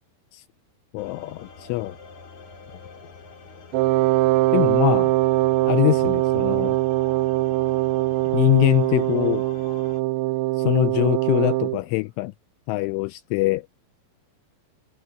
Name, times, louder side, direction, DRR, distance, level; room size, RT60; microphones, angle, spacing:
voice 1, 0.9-2.0 4.5-5.1 5.7-6.8 8.3-9.4 10.6-12.3 12.7-13.7, left 21 dB, 85° left, 2.9 m, -23 dB
sound 1, 1.0-10.0, left 4 dB, 40° left, 3.9 m, -45 dB
Wind instrument woodwind instrument, 3.7-11.8, right 18 dB, 85° right, 2.6 m, -22 dB
omnidirectional pair, 5.8 m